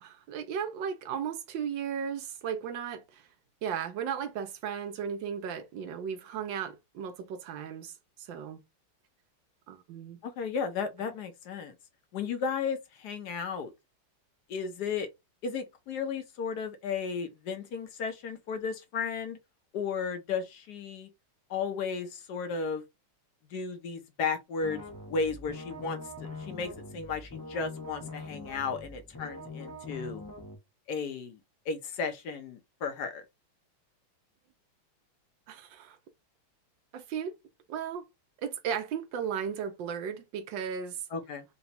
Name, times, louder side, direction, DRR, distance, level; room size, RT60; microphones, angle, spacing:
voice 1, 0.0-3.3 3.6-7.9 8.2-8.6 9.7-10.2 35.5-36.0 36.9-37.3 37.7-38.1 38.4-41.0, right 7 dB, 70° right, 1.3 m, -35 dB
voice 2, 10.2-11.8 12.1-13.7 14.5-15.1 15.4-19.4 19.7-21.1 21.5-22.8 23.5-24.8 25.1-30.2 30.9-31.4 31.7-33.2 41.1-41.4, left 5 dB, 65° left, 1.1 m, -34 dB
sound 1, 24.6-30.6, left 2 dB, 30° left, 0.3 m, -43 dB
4.0 x 2.3 x 4.0 m
omnidirectional pair, 2.3 m